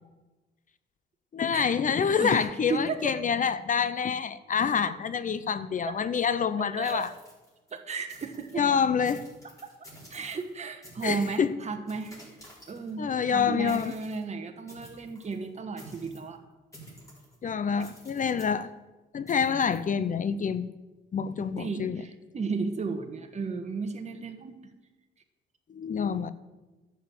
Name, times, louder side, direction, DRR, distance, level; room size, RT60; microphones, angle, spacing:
voice 1, 1.3-7.1 8.5-9.3 11.0-11.5 13.0-13.9 17.4-18.7 19.1-20.7 21.1-22.0 25.7-26.3, left 6 dB, 40° left, 0.6 m, -27 dB
voice 2, 2.1-3.1 5.9-6.0 6.8-7.0 7.7-8.7 9.6-9.7 10.1-12.1 12.7-13.0 13.3-16.4 21.6-24.7, right 4 dB, 35° right, 1.5 m, -34 dB
sound 1, 6.7-7.8 8.1-8.6 9.0-10.5 10.8-11.5 11.9-13.1 13.7-14.2 14.7-15.4 15.8-16.3 16.7-17.4 17.8-18.5 19.3-19.8, equal, 15° left, 4.7 m, -51 dB
11.0 x 7.3 x 7.8 m
cardioid pair, 90°, 20 cm